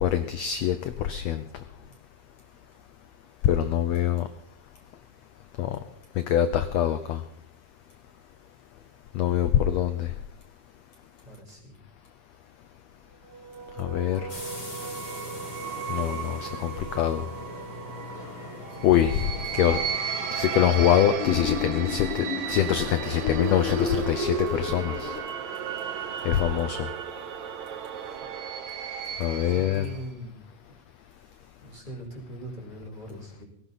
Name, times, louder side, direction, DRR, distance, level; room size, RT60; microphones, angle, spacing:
voice 1, 0.0-1.4 3.4-4.3 5.6-5.8 6.3-7.2 9.2-10.1 13.8-14.3 15.9-17.2 18.8-19.8 20.3-22.1 22.5-25.1 26.3-26.8 29.2-29.9, left 11 dB, 75° left, 10 dB, 1.6 m, -24 dB
voice 2, 11.2-11.8 28.0-28.4 29.3-30.4 31.6-33.4, right 1 dB, 15° right, 1 dB, 4.6 m, -42 dB
sound 1, 13.3-30.1, right 8 dB, 65° right, 2.4 m, -35 dB
sound 2, 14.3-21.1, left 3 dB, 30° left, 6.0 m, -41 dB
sound 3, 21.2-25.2, left 3 dB, 90° left, 4.4 m, -31 dB
18.0 x 16.5 x 4.1 m, 0.74 s
omnidirectional pair, 3.9 m